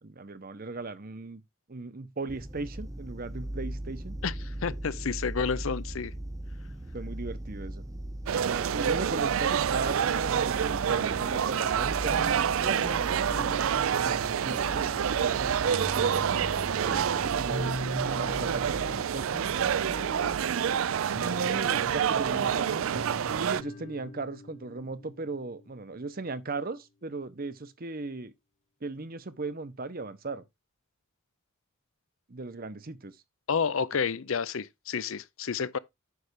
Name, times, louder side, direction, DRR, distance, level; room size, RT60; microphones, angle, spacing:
voice 1, 0.0-1.4 1.7-4.2 4.7-4.8 6.9-7.8 8.4-16.2 16.8-19.7 21.2-28.3 28.8-30.4 32.3-33.2, right 3 dB, 45° right, 0.9 m, -38 dB
sound 1, 2.3-20.4, right 1 dB, 15° right, 0.6 m, -40 dB
voice 2, 4.2-6.1 33.5-35.8, left 6 dB, 65° left, 0.6 m, -30 dB
sound 2, 8.3-23.6, right 8 dB, 65° right, 0.4 m, -28 dB
sound 3, 9.9-26.2, left 1 dB, 30° left, 1.2 m, -42 dB
9.6 x 3.3 x 6.7 m
head